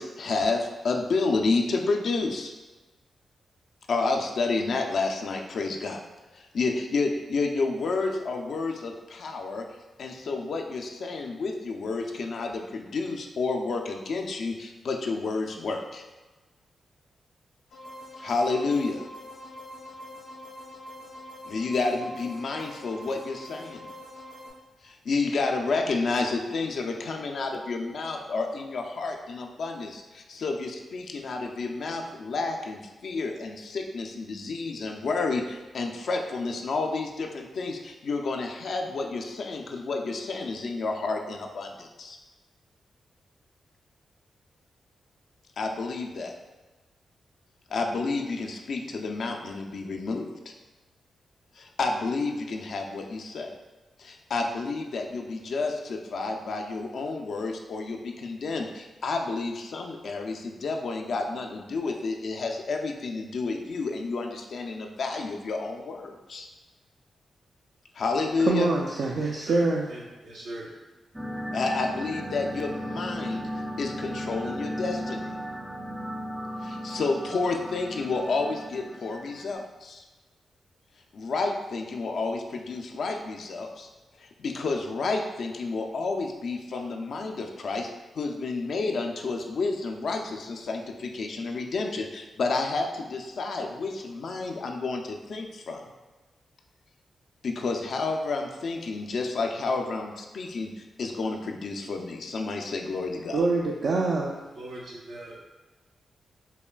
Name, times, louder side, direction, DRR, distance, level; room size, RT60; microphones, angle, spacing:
voice 1, 0.0-2.5 3.9-6.0 6.3-9.6 10.0-16.0 18.2-19.0 21.5-23.9 24.8-42.2 45.6-46.3 47.7-50.5 51.6-53.5 54.0-66.5 67.9-68.7 71.5-73.5 73.8-75.3 76.6-80.0 81.1-83.9 84.2-87.9 88.2-95.9 97.4-100.7 101.0-103.5, left 3 dB, 70° left, 2 dB, 0.4 m, -30 dB
sound 1, 17.7-24.5, left 1 dB, 90° left, 1.2 m, -44 dB
voice 2, 68.4-70.0 103.3-104.4, right 3 dB, 70° right, -2 dB, 0.3 m, -25 dB
voice 3, 69.2-69.6 69.9-70.7 104.5-105.4, right 1 dB, 85° right, -5 dB, 0.7 m, -41 dB
sound 2, 71.1-79.5, equal, 10° right, 0.5 m, -36 dB
5.4 x 2.3 x 2.2 m, 1.2 s
supercardioid pair, 50°, 0 cm